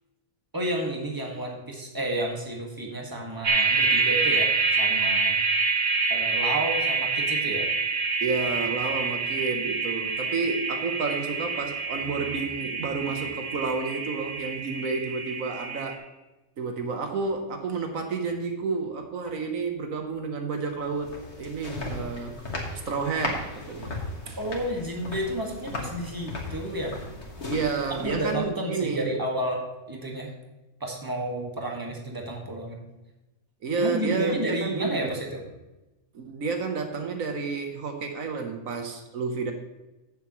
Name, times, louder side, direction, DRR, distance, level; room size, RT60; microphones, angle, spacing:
voice 1, 0.5-4.5 4.8-5.4 6.1-7.7 24.4-27.1 27.4-27.6 28.0-29.6 29.9-30.3 30.8-32.8 33.8-35.3, right 1 dB, 15° right, 0 dB, 1.7 m, -31 dB
sound 1, 3.4-15.9, right 4 dB, 45° right, 1.7 m, -27 dB
voice 2, 8.2-16.0 16.6-22.3 22.8-24.0 24.3-24.4 27.5-29.1 33.6-35.2 36.1-39.5, right 4 dB, 75° right, 5 dB, 1.4 m, -30 dB
sound 2, 20.7-28.5, left 2 dB, 55° left, 2.0 m, -36 dB
15.0 x 7.1 x 3.1 m, 1.0 s
omnidirectional pair, 1.4 m